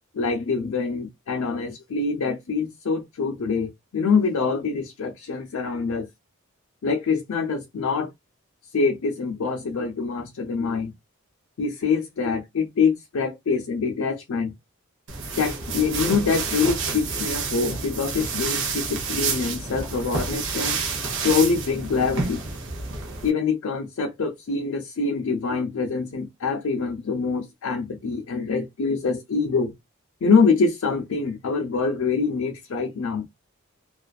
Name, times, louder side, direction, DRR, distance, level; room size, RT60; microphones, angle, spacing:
voice 1, 0.1-6.1 6.8-8.1 8.7-10.9 11.6-14.5 15.4-20.8 21.2-22.4 23.2-29.7 30.2-33.3, left 4 dB, 75° left, 0.5 m, -25 dB
sound 1, 15.1-23.3, right 4 dB, 60° right, 0.7 m, -29 dB
2.4 x 2.3 x 2.3 m
head